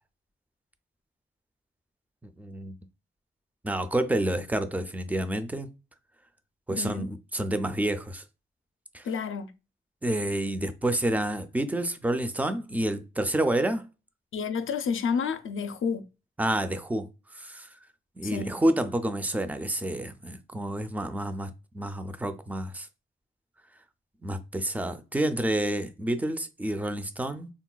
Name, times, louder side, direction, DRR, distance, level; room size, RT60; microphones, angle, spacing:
voice 1, 2.2-2.8 3.6-5.7 6.7-8.2 8.9-9.0 10.0-13.9 16.4-17.1 17.4-17.7 18.2-22.9 24.2-27.5, right 1 dB, 5° right, 0.4 m, -29 dB
voice 2, 6.7-7.1 9.0-9.5 14.3-16.0 18.2-18.5, left 6 dB, 70° left, 0.4 m, -30 dB
3.8 x 2.2 x 2.3 m
cardioid pair, 70°, 21 cm